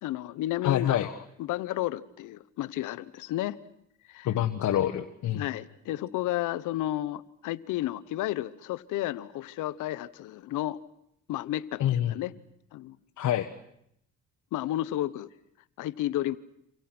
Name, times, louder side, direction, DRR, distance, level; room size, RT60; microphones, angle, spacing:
voice 1, 0.0-3.6 4.1-4.3 5.3-10.8 11.3-12.3 12.7-13.0 14.5-15.3 15.8-16.4, left 14 dB, 90° left, 17 dB, 0.9 m, -32 dB
voice 2, 0.6-1.1 4.2-5.5 11.8-12.1 13.2-13.5, left 11 dB, 70° left, 6 dB, 1.3 m, -26 dB
28.5 x 26.5 x 6.0 m, 0.76 s
cardioid pair, 90°, 30 cm